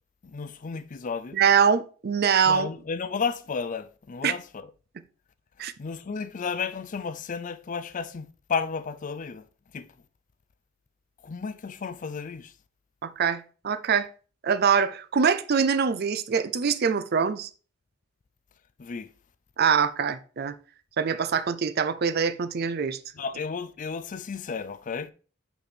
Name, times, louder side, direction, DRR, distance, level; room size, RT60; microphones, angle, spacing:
voice 1, 0.2-1.4 2.5-4.7 5.8-9.5 9.7-9.9 11.2-12.5 18.8-19.1 23.1-25.1, left 5 dB, 40° left, 0.4 m, -33 dB
voice 2, 1.3-2.7 4.2-4.3 5.6-5.7 13.0-14.1 14.4-17.5 19.6-20.6 21.0-23.0, right 6 dB, 50° right, 0.5 m, -24 dB
5.5 x 4.2 x 4.4 m
head